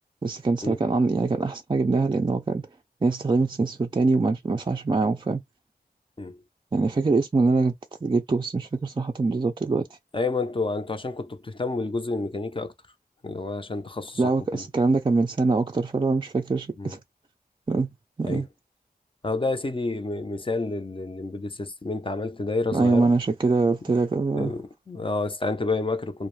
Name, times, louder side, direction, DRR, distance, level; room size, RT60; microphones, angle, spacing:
voice 1, 0.2-2.6 3.0-5.4 6.7-7.7 8.0-9.9 14.2-17.0 17.7-17.9 18.2-18.5 22.7-24.5, right 3 dB, 30° right, 0.3 m, -23 dB
voice 2, 10.1-12.7 13.2-14.6 16.8-16.9 18.2-18.4 19.2-23.1 24.3-26.3, left 3 dB, 30° left, 0.5 m, -29 dB
2.3 x 2.0 x 3.0 m
wide cardioid pair, 55°, 17 cm